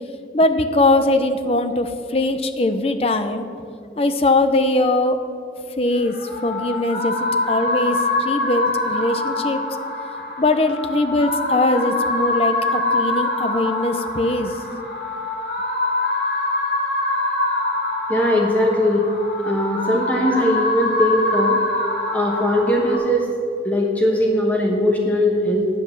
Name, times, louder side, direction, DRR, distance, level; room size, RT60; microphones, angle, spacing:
voice 1, 0.3-3.5 4.0-5.2 5.8-6.1 6.4-9.6 10.4-14.6, left 2 dB, 35° left, 8 dB, 0.6 m, -21 dB
sound 1, 6.0-23.0, left 2 dB, 55° left, 2.3 m, -24 dB
voice 2, 18.1-19.1 19.4-21.6 22.1-23.3 23.6-25.7, left 1 dB, 10° left, -1 dB, 1.1 m, -19 dB
9.6 x 7.8 x 7.0 m, 2.6 s
head